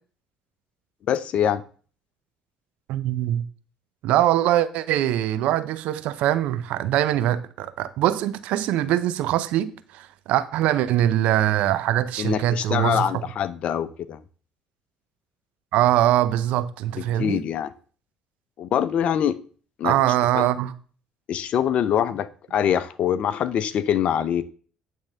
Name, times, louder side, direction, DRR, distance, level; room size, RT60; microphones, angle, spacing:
voice 1, 1.1-1.6 12.2-14.2 17.2-17.7 18.6-19.4 19.8-19.9 20.3-20.5 21.3-24.4, left 9 dB, 60° left, 0.7 m, -24 dB
voice 2, 2.9-3.4 4.0-13.2 15.7-17.4 19.8-20.7, right 13 dB, 75° right, 0.7 m, -22 dB
9.4 x 3.6 x 6.6 m
hypercardioid pair, 60°, 2 cm